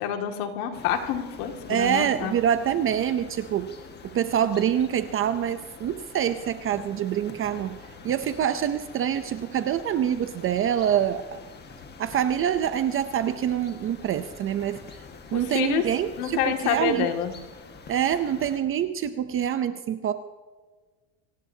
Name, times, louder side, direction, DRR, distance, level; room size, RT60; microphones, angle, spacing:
voice 1, 0.0-2.3 15.3-15.8 16.2-17.3, left 8 dB, 75° left, 4 dB, 2.3 m, -27 dB
sound 1, 0.7-18.6, left 4 dB, 25° left, 1.6 m, -46 dB
voice 2, 1.7-3.7 4.0-7.8 8.0-11.4 12.0-14.8 15.3-17.1 17.9-20.1, right 9 dB, 30° right, 10 dB, 0.6 m, -25 dB
24.0 x 18.5 x 2.8 m, 1.4 s
cardioid pair, 145°, 44 cm